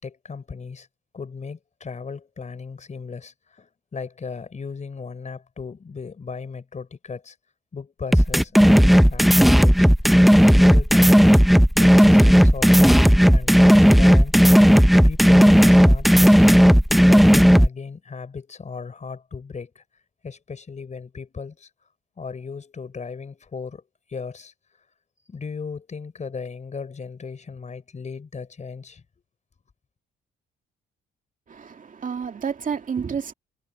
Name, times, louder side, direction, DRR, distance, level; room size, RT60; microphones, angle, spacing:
voice 1, 0.0-0.9 1.1-7.3 7.7-9.9 10.3-11.2 11.7-14.7 15.0-19.8 20.2-21.7 22.2-23.8 24.1-24.5 25.3-29.0, left 5 dB, 35° left, 5.0 m, -36 dB
bible-drums, 8.1-17.7, equal, ahead, 0.6 m, -13 dB
voice 2, 31.5-33.3, right 6 dB, 40° right, 2.4 m, -30 dB
cardioid pair, 90°, 20 cm